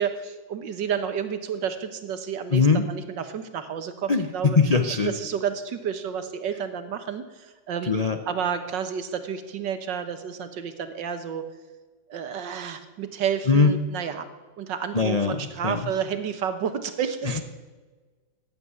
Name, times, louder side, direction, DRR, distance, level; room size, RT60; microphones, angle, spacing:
voice 1, 0.0-4.6 5.0-7.9 8.3-11.4 12.1-14.3 14.6-17.4, right 7 dB, 70° right, 9 dB, 1.8 m, -30 dB
voice 2, 2.5-2.8 4.1-4.2 4.6-5.1 7.9-8.2 13.5-13.7 14.9-15.4 15.6-15.8, left 4 dB, 65° left, 7 dB, 0.3 m, -20 dB
14.5 x 9.2 x 9.5 m, 1.3 s
omnidirectional pair, 2.0 m